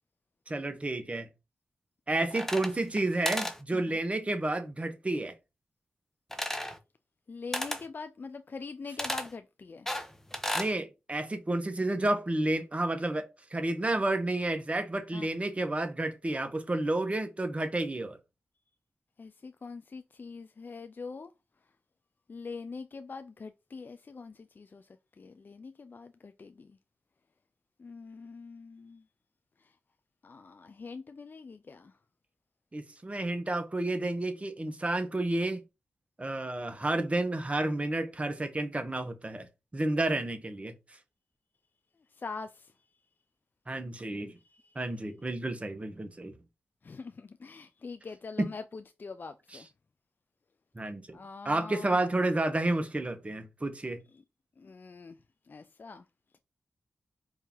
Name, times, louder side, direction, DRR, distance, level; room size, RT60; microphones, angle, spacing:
voice 1, 0.5-1.3 2.1-5.3 10.5-13.3 13.5-18.2 32.7-35.6 36.2-39.5 39.7-40.7 43.7-44.3 44.7-46.3 48.4-48.5 50.7-51.2 51.4-54.0, right 2 dB, 30° right, 1.1 m, -30 dB
sound 1, 2.3-3.0 3.2-3.6 6.3-6.8 7.5-7.8 9.0-9.3 9.9-10.7, left 1 dB, 10° left, 1.0 m, -33 dB
voice 2, 7.3-9.9 15.1-15.3 19.2-21.3 22.3-24.9 25.2-26.8 27.8-29.0 29.6-29.7 30.2-31.9 42.1-42.7 44.5-44.8 46.8-49.7 51.1-52.0 54.6-55.2 55.5-56.0, left 4 dB, 50° left, 0.4 m, -44 dB
4.7 x 2.8 x 3.5 m
cardioid pair, 45°, 4 cm